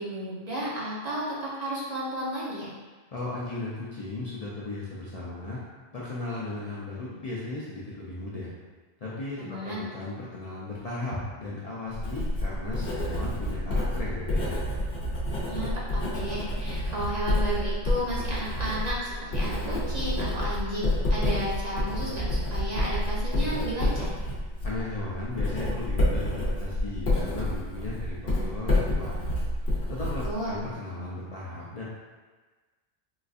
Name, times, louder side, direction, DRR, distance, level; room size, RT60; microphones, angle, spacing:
voice 1, 0.0-2.7 9.4-9.9 15.4-24.1 30.2-30.6, right 1 dB, 45° right, -7 dB, 0.7 m, -33 dB
voice 2, 3.1-5.6 5.9-8.5 9.0-14.6 24.6-29.1 29.6-31.8, left 2 dB, 50° left, -7 dB, 0.5 m, -36 dB
Writing, 11.9-30.7, left 1 dB, 65° left, 1.0 m, -28 dB
4.0 x 2.5 x 2.4 m, 1.3 s
omnidirectional pair, 1.1 m